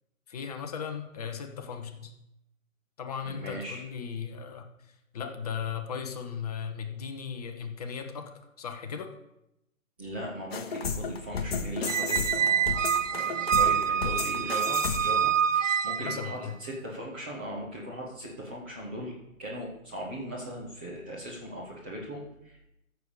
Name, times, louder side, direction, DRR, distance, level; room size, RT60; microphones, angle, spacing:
voice 1, 0.3-2.1 3.0-4.7 5.1-9.1 16.0-16.5, left 7 dB, 25° left, 5 dB, 1.0 m, -37 dB
voice 2, 3.2-3.8 10.0-19.1 19.4-22.6, equal, 10° right, -7 dB, 0.6 m, -39 dB
sound 1, 10.5-15.3, left 5 dB, 45° left, 1.2 m, -33 dB
Squeak, 11.9-16.4, right 8 dB, 60° right, 0.6 m, -26 dB
14.5 x 6.9 x 4.9 m, 0.86 s
figure-of-eight pair, 145°, 42 cm